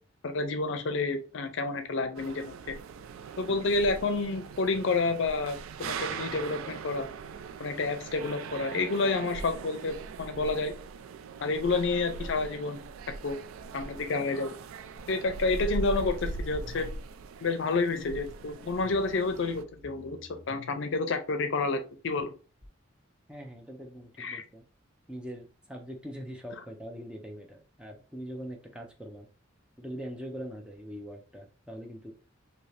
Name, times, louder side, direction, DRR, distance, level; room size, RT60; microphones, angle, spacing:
voice 1, 0.2-2.8 3.4-7.1 7.6-10.7 11.4-12.8 13.2-13.4 13.7-14.6 15.1-16.9 17.4-22.3 24.2-24.4, left 3 dB, 65° left, 8 dB, 0.5 m, -29 dB
sound 1, 2.1-19.6, right 4 dB, 80° right, 0.3 m, -40 dB
sound 2, 15.0-16.9 18.8-20.8 22.6-22.7, left 2 dB, 40° right, 1.5 m, -52 dB
voice 2, 23.3-24.6 25.1-29.3 29.8-32.1, equal, 5° right, 3 dB, 0.4 m, -42 dB
2.8 x 2.7 x 3.1 m, 0.35 s
head